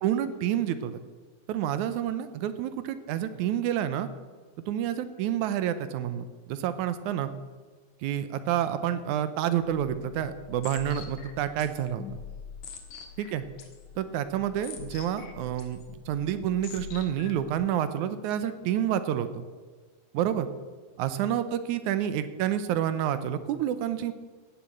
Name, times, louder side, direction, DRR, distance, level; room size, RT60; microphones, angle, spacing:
voice 1, 0.0-1.0 1.5-4.1 4.7-7.3 8.0-12.0 13.2-13.4 14.0-15.8 16.1-19.4 20.1-20.5 21.0-24.1, right 10 dB, 80° right, 11 dB, 2.2 m, -29 dB
sound 1, 9.6-17.5, left 6 dB, 70° left, 2.8 m, -45 dB
16.5 x 7.0 x 7.8 m, 1.5 s
omnidirectional pair, 3.4 m